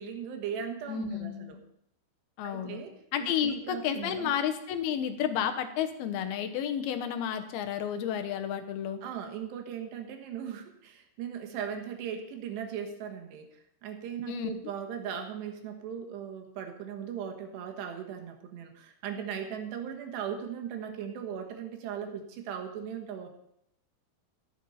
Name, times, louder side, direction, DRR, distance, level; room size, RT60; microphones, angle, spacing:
voice 1, 0.0-1.6 2.4-2.9 3.2-4.3 9.0-13.5 13.8-23.3, right 8 dB, 90° right, 3 dB, 3.6 m, -38 dB
voice 2, 0.9-1.6 2.4-2.8 3.1-9.0 14.3-14.5, left 9 dB, 75° left, 7 dB, 2.8 m, -31 dB
14.5 x 11.5 x 4.2 m, 0.75 s
omnidirectional pair, 4.7 m